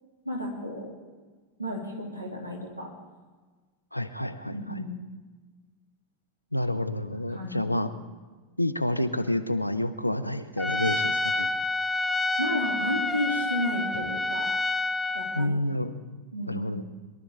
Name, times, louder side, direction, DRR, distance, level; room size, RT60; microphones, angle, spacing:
voice 1, 0.2-0.9 1.6-2.9 4.5-5.0 7.1-7.8 12.4-14.5 15.1-15.5 16.3-16.8, left 1 dB, 85° right, -1 dB, 2.5 m, -32 dB
voice 2, 3.9-4.9 6.5-7.9 8.6-11.5 15.3-15.9 16.5-16.8, left 1 dB, 85° left, 9 dB, 0.7 m, -29 dB
Trumpet, 10.6-15.5, left 2 dB, 10° left, 0.4 m, -28 dB
23.0 x 12.5 x 3.4 m, 1.3 s
figure-of-eight pair, 90°, 0 cm